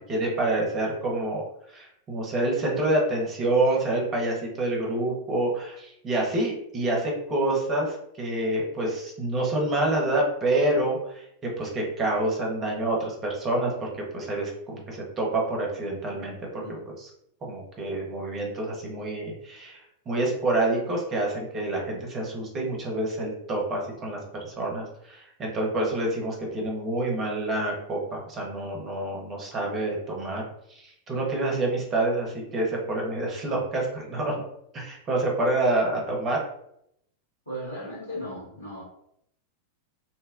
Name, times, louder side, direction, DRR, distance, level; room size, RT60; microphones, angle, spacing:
voice 1, 0.1-1.4 1.7-13.9 14.1-16.4 17.5-19.8 20.1-30.4 30.7-34.4 34.7-36.4, right 2 dB, 25° right, -1 dB, 0.8 m, -27 dB
voice 2, 37.4-38.8, equal, 80° left, -8 dB, 1.3 m, -36 dB
2.7 x 2.1 x 2.4 m, 0.75 s
figure-of-eight pair, 90°, 0 cm